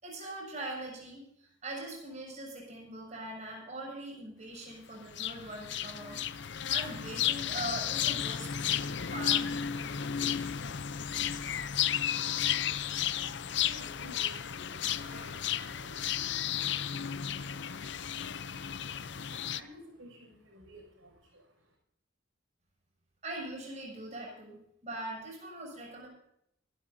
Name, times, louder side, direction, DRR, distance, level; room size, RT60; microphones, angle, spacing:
voice 1, 0.0-8.5 9.1-9.5 23.2-26.1, right 1 dB, 35° right, -1 dB, 6.7 m, -42 dB
sound 1, 5.1-19.6, left 9 dB, 60° left, 0.6 m, -33 dB
voice 2, 11.3-21.8, equal, 75° right, 2 dB, 6.1 m, -56 dB
25.0 x 12.5 x 2.7 m, 0.75 s
head